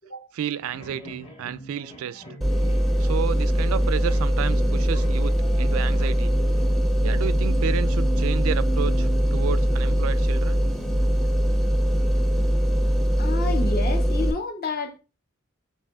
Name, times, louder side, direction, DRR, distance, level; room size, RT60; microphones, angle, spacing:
voice 1, 0.3-2.2 3.0-6.4 7.0-10.6, right 8 dB, 80° right, 0.3 m, -31 dB
sound 1, 0.6-13.1, right 3 dB, 25° left, 1.3 m, -40 dB
sound 2, 2.4-14.3, equal, ahead, 0.5 m, -22 dB
voice 2, 13.2-15.0, left 3 dB, 45° left, 0.7 m, -30 dB
6.6 x 3.0 x 2.2 m
head